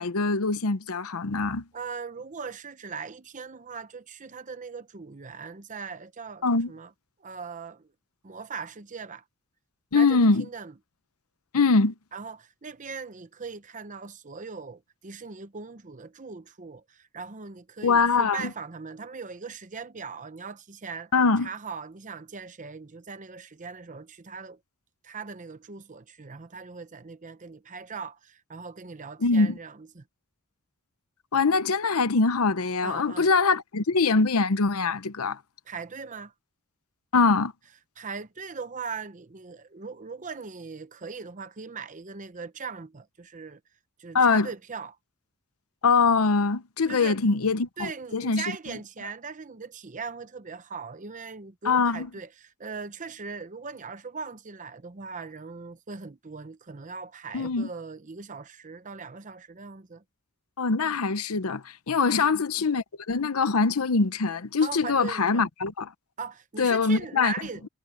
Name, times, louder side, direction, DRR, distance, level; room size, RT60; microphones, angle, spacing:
voice 1, 0.0-1.6 6.4-6.7 9.9-10.4 11.5-11.9 17.8-18.5 21.1-21.5 29.2-29.6 31.3-35.4 37.1-37.5 44.1-44.5 45.8-48.4 51.6-52.1 57.3-57.7 60.6-65.9 66.6-67.3, left 4 dB, 80° left, 0.8 m, -23 dB
voice 2, 1.7-6.9 7.2-7.9 8.2-9.2 9.9-10.7 12.1-21.1 21.4-24.6 25.0-30.0 32.8-33.3 35.7-36.3 38.0-43.6 44.0-45.0 46.9-47.2 47.8-60.0 62.0-62.2 64.6-65.5 66.2-67.7, right 5 dB, 35° right, 0.8 m, -40 dB
head